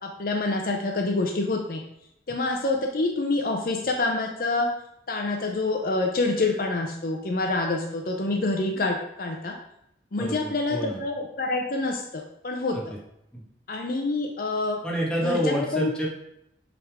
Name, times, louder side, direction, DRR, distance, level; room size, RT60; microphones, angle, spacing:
voice 1, 0.0-1.8 2.3-4.7 5.1-9.6 10.1-12.8 13.7-14.8 15.2-15.9, left 2 dB, 50° left, 2 dB, 0.6 m, -27 dB
voice 2, 10.2-11.0 12.7-12.9 13.3-13.4 14.8-16.1, equal, 5° left, -5 dB, 1.4 m, -28 dB
8.2 x 3.6 x 3.5 m, 0.79 s
head